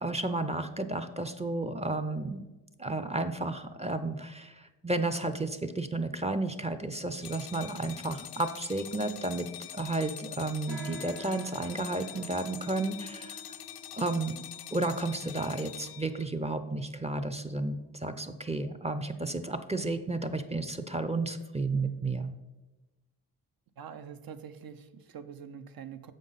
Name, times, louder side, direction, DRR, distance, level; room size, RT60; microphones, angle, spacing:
voice 1, 0.0-2.4 2.8-9.5 9.7-13.4 13.9-14.4 14.7-22.3, right 2 dB, 15° right, 9 dB, 0.5 m, -32 dB
sound 1, 7.2-16.3, left 11 dB, 65° left, 0.5 m, -45 dB
sound 2, 10.7-18.5, right 1 dB, 90° right, 0.9 m, -50 dB
voice 2, 23.8-26.1, right 7 dB, 60° right, 10 dB, 0.6 m, -45 dB
7.3 x 5.2 x 4.0 m, 1.1 s
supercardioid pair, 40°, 41 cm